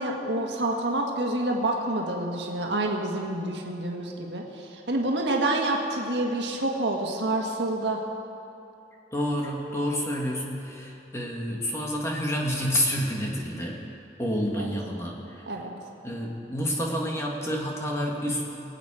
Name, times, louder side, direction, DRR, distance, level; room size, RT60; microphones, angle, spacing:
voice 1, 0.0-8.0 14.6-14.7 15.5-15.7, right 2 dB, 75° right, 0 dB, 1.7 m, -28 dB
voice 2, 9.1-13.8 14.2-15.5 16.0-18.5, equal, 15° left, -1 dB, 1.6 m, -29 dB
23.0 x 8.4 x 4.9 m, 2.8 s
head